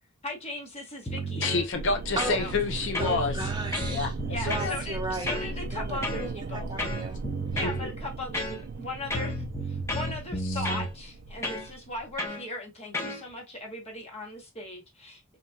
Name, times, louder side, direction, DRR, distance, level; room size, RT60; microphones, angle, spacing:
voice 1, 0.2-1.5 2.2-2.5 4.3-6.7 7.5-15.4, left 1 dB, 30° left, 1.1 m, -38 dB
sound 1, 1.1-1.7 2.2-2.7 2.9-4.7 5.3-5.5 6.0-6.3 6.8-7.8 8.3-8.8 9.1-10.9 11.4-11.7 12.2-12.4 12.9-13.2, equal, 15° left, 0.8 m, -32 dB
voice 2, 1.4-3.3 3.9-4.1 4.4-4.8 7.6-7.9, left 3 dB, 60° left, 0.6 m, -28 dB
sound 2, 1.7-12.3, right 3 dB, 45° right, 0.3 m, -38 dB
voice 3, 2.2-2.5 3.0-4.1 4.4-5.4 5.7-7.2, right 2 dB, 20° right, 0.9 m, -35 dB
3.9 x 3.0 x 2.2 m
head